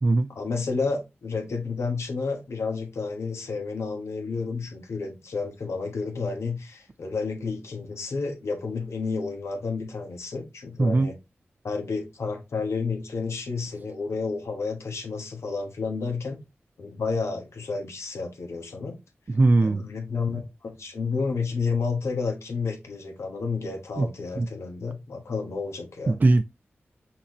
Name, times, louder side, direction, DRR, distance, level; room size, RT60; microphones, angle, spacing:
voice 1, 0.3-11.2 11.6-16.4 16.8-19.0 19.6-26.2, left 4 dB, 85° left, 1.2 m, -31 dB
voice 2, 10.8-11.1 19.3-19.8 24.0-24.1 24.4-24.5 26.1-26.4, right 2 dB, 40° right, 0.3 m, -20 dB
5.8 x 2.8 x 3.0 m
cardioid pair, 45°, 5 cm